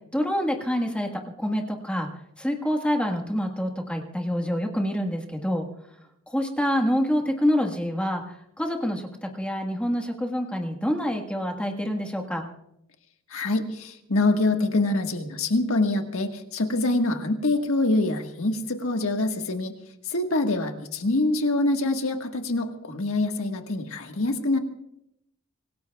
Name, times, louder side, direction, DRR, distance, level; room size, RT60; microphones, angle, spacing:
voice 1, 0.1-1.1 1.4-2.1 2.4-5.7 6.3-8.2 8.6-12.4, equal, 5° left, 2 dB, 1.5 m, -26 dB
voice 2, 13.3-19.7 20.1-24.6, left 2 dB, 65° left, 4 dB, 1.5 m, -25 dB
25.5 x 18.5 x 2.3 m, 0.79 s
head